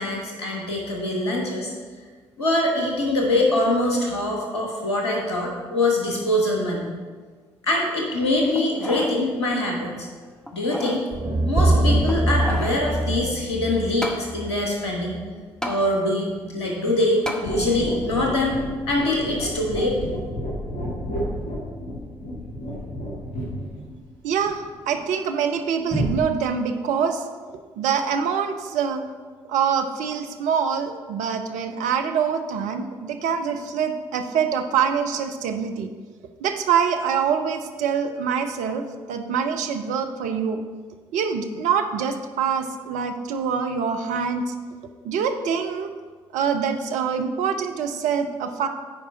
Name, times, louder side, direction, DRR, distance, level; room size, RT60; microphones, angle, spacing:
voice 1, 0.0-1.7 2.4-6.9 7.6-10.1 10.5-11.0 11.4-15.2 15.6-18.6 18.9-20.0, left 1 dB, 85° left, -1 dB, 1.1 m, -23 dB
sound 1, 8.6-9.2 9.6-9.7 10.5-11.0 12.0-12.8 14.0-14.2 15.6-15.8 17.3-17.5 18.1-18.2, equal, 5° left, 1.1 m, -31 dB
sound 2, 11.1-15.3, right 1 dB, 25° right, 1.0 m, -23 dB
sound 3, 17.4-25.0 25.9-26.1, equal, 60° left, 2.5 m, -31 dB
voice 2, 24.2-27.2 27.8-29.0 29.5-35.9 36.4-40.6 41.1-44.5 45.0-45.9 46.3-48.7, right 7 dB, 65° right, 7 dB, 0.6 m, -25 dB
9.5 x 4.8 x 4.1 m, 1.5 s
figure-of-eight pair, 40°, 13 cm